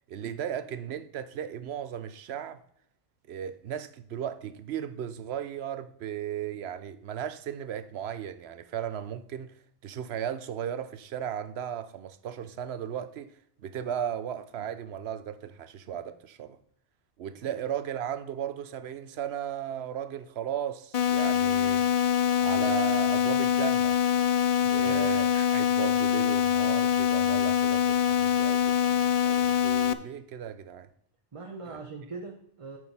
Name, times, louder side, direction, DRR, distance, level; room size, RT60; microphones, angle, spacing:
voice 1, 0.1-2.6 3.3-9.5 9.8-13.3 13.6-16.6 17.2-21.8 22.4-24.0 24.7-30.9 31.7-31.8, right 9 dB, 85° right, 0.9 m, -36 dB
sound 1, 20.9-29.9, left 9 dB, 50° left, 0.5 m, -24 dB
voice 2, 24.6-25.1 31.3-32.8, right 3 dB, 35° right, 0.8 m, -41 dB
8.7 x 6.5 x 4.2 m
omnidirectional pair, 1.0 m